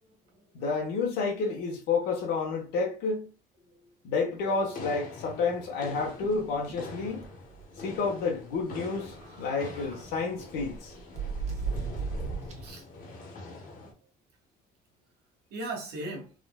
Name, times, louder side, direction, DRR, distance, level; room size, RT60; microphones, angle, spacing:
voice 1, 0.0-0.6 3.6-3.9 8.6-8.7 9.3-10.1 12.6-12.9 15.5-16.3, right 2 dB, 80° right, 1.3 m, -41 dB
voice 2, 0.5-3.3 4.0-7.3 7.8-10.9, left 4 dB, 90° left, 1.0 m, -30 dB
sound 1, 4.4-13.9, left 3 dB, 55° left, 1.0 m, -44 dB
sound 2, 5.9-6.9 7.2-7.3 7.6-7.8 9.0-10.0 10.6-12.8, right 5 dB, 40° right, 1.0 m, -36 dB
3.6 x 2.5 x 2.2 m
cardioid pair, 110°, 17 cm